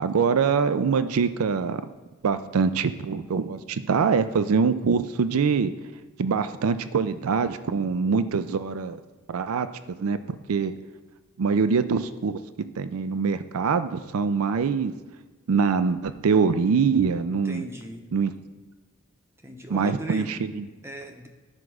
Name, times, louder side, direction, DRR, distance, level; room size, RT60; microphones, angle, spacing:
voice 1, 0.0-1.8 2.2-5.7 6.2-9.0 9.3-9.7 10.0-10.2 10.5-10.7 11.4-12.4 12.8-14.9 15.5-17.6 18.1-18.3 19.7-20.6, right 5 dB, 80° right, 12 dB, 0.4 m, -24 dB
voice 2, 17.3-18.1 19.4-20.4 20.8-21.3, right 1 dB, 10° right, 3 dB, 0.7 m, -38 dB
9.8 x 4.7 x 6.2 m, 1.3 s
head